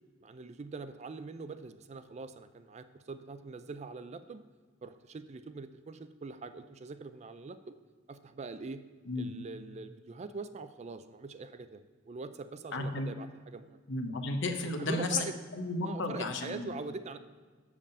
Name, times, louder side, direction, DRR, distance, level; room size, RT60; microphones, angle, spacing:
voice 1, 0.2-4.4 4.8-7.7 8.1-8.8 9.2-13.8 14.8-15.3 15.8-17.2, right 3 dB, 35° right, 11 dB, 0.4 m, -43 dB
voice 2, 12.7-13.1 13.9-15.2 15.5-16.7, left 2 dB, 65° left, 6 dB, 0.9 m, -33 dB
7.4 x 7.1 x 5.3 m, 1.5 s
head